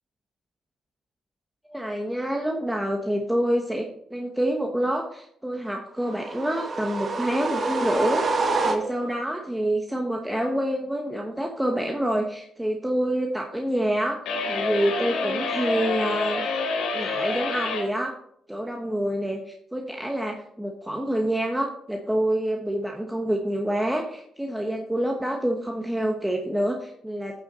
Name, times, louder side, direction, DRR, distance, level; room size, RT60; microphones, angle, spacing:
voice 1, 1.7-14.2 14.5-16.6 16.9-18.1 18.5-27.4, right 1 dB, 5° right, 2 dB, 1.1 m, -27 dB
sound 1, 6.0-9.2, right 3 dB, 40° right, 1.2 m, -27 dB
sound 2, 14.2-17.9, left 3 dB, 90° left, 2.5 m, -27 dB
9.1 x 6.9 x 4.1 m, 0.71 s
cardioid pair, 90°, 0 cm